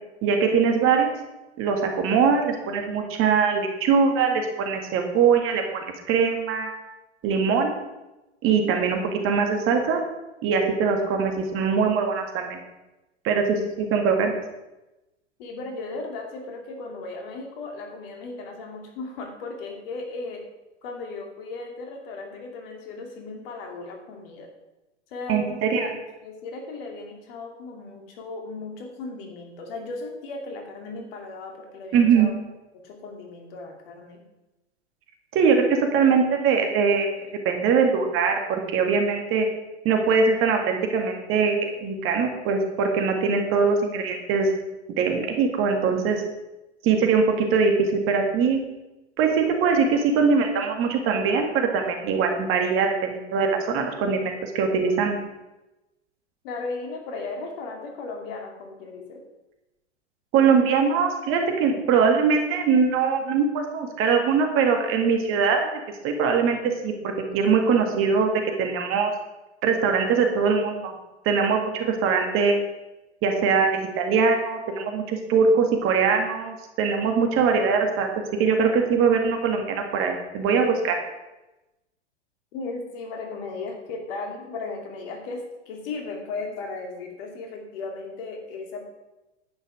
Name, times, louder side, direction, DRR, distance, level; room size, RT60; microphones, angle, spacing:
voice 1, 0.2-1.1 1.6-6.7 7.2-7.7 8.4-10.0 10.4-12.6 13.2-14.3 25.3-25.9 31.9-32.3 35.3-39.5 39.8-44.5 44.9-46.2 46.8-48.6 49.2-55.2 60.3-69.1 69.6-70.9 71.3-72.6 73.2-81.0, right 5 dB, 35° right, 4 dB, 2.0 m, -22 dB
voice 2, 15.4-20.4 20.8-24.5 25.1-32.3 32.7-34.2 54.1-54.3 56.4-59.2 82.5-88.8, left 3 dB, 50° left, 2 dB, 2.7 m, -36 dB
10.5 x 9.1 x 5.0 m, 1.0 s
figure-of-eight pair, 100°, 36 cm